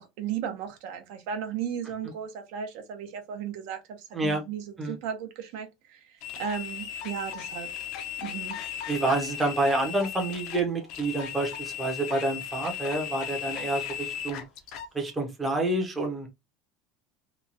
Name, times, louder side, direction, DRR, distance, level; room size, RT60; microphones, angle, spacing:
voice 1, 0.0-6.0 6.4-7.7 8.2-8.6, right 8 dB, 60° right, 0.7 m, -35 dB
voice 2, 4.1-4.4 4.8-5.0 8.9-14.4 14.9-16.3, right 2 dB, 10° right, 0.7 m, -28 dB
sound 1, 6.2-14.9, left 9 dB, 50° left, 0.6 m, -37 dB
3.0 x 2.3 x 2.5 m
cardioid pair, 175°, 0 cm